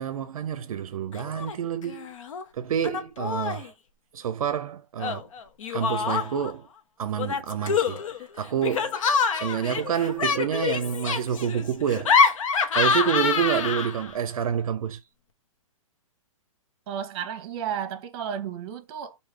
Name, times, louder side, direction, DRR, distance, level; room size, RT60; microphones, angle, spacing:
voice 1, 0.0-2.1 2.5-3.7 4.1-5.3 5.7-6.7 7.0-8.0 8.4-9.0 9.3-12.1 12.7-15.0, right 8 dB, 80° right, 0.5 m, -28 dB
Laughter, 1.1-1.6 1.8-2.4 2.8-3.7 5.0-6.5 7.2-14.1, left 5 dB, 65° left, 0.9 m, -26 dB
voice 2, 16.9-19.2, right 8 dB, 45° right, 0.9 m, -33 dB
3.2 x 2.7 x 4.5 m
hypercardioid pair, 145°, 18 cm